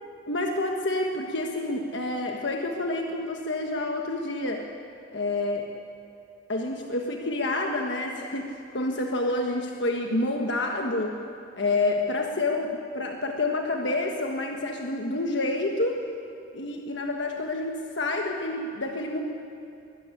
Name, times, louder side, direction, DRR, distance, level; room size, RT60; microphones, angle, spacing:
voice 1, 0.3-4.7 5.1-5.7 6.5-11.2 11.6-16.0 16.5-19.2, left 2 dB, 60° left, 1 dB, 1.4 m, -28 dB
22.0 x 13.5 x 9.1 m, 2.6 s
head